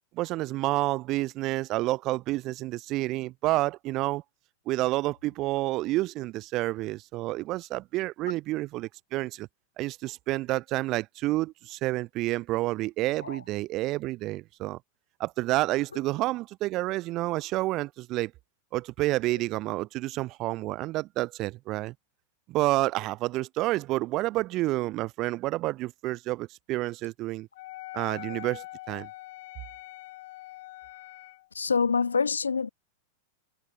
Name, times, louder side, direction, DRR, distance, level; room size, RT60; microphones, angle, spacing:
voice 1, 0.1-4.2 4.7-9.5 9.8-14.8 15.2-18.3 18.7-21.9 22.5-27.5 27.9-29.1, right 18 dB, 40° right, 0.5 m, -29 dB
Wind instrument woodwind instrument, 27.6-31.5, left 19 dB, 50° left, 1.5 m, -43 dB
voice 2, 31.5-32.7, left 5 dB, 75° left, 0.5 m, -26 dB
figure-of-eight pair, 90°, 0 cm